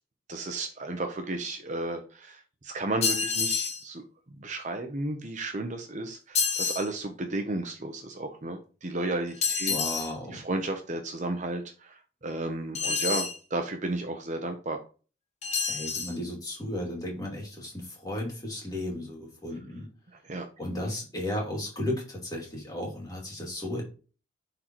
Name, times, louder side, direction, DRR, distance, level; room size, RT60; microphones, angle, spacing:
voice 1, 0.3-4.0 4.4-9.8 10.3-14.8 20.2-20.5, right 2 dB, 35° right, 5 dB, 0.8 m, -33 dB
sound 1, 3.0-3.8 6.3-6.9 9.4-10.1 12.7-13.4 15.4-16.1, left 5 dB, 35° left, 0.8 m, -28 dB
voice 2, 9.7-10.4 15.7-19.9 20.6-23.8, left 1 dB, 20° left, -2 dB, 2.5 m, -34 dB
10.5 x 3.9 x 3.0 m, 0.36 s
head